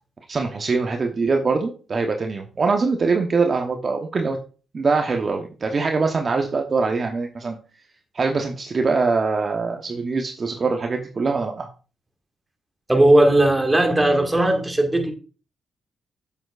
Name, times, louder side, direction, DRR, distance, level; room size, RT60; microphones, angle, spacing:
voice 1, 0.3-4.4 4.7-7.6 8.1-11.7, right 4 dB, 45° right, 1.0 m, -23 dB
voice 2, 12.9-15.1, right 1 dB, 15° right, 1.9 m, -17 dB
7.7 x 6.9 x 2.5 m
supercardioid pair, 50°, 0 cm